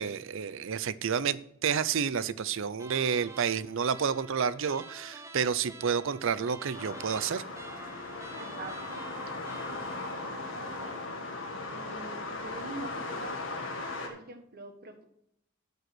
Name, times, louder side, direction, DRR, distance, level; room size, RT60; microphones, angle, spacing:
voice 1, 0.0-7.4, right 6 dB, 65° right, 17 dB, 0.5 m, -30 dB
sound 1, 2.8-11.0, right 3 dB, 15° right, 0.7 m, -48 dB
sound 2, 6.7-14.1, left 2 dB, 65° left, 2.0 m, -38 dB
voice 2, 8.4-9.0 10.4-10.9 11.7-13.4 14.0-15.0, right 2 dB, 50° right, 6 dB, 1.5 m, -44 dB
12.0 x 5.4 x 6.2 m, 0.75 s
head